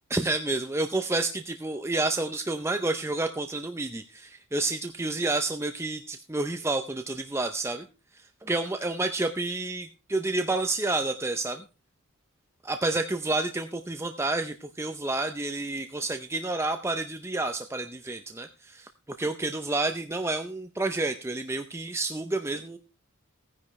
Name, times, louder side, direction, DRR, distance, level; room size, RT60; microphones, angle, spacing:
voice 1, 0.1-7.8 8.4-11.6 12.6-18.9 19.2-22.8, right 2 dB, 10° right, 7 dB, 0.5 m, -29 dB
16.0 x 10.0 x 3.2 m, 0.32 s
head